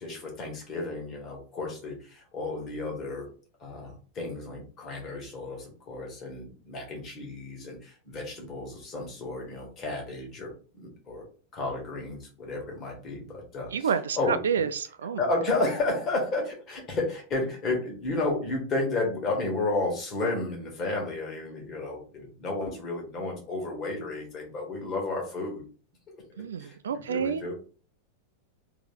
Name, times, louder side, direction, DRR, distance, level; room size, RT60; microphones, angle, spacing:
voice 1, 0.0-3.3 3.6-11.3 11.5-14.4 15.2-25.6 26.6-27.5, left 2 dB, 30° left, 1.7 m, -32 dB
voice 2, 13.7-14.2 14.4-15.2 26.4-27.4, right 7 dB, 65° right, 0.3 m, -29 dB
3.6 x 2.9 x 3.8 m
figure-of-eight pair, 90°, 0 cm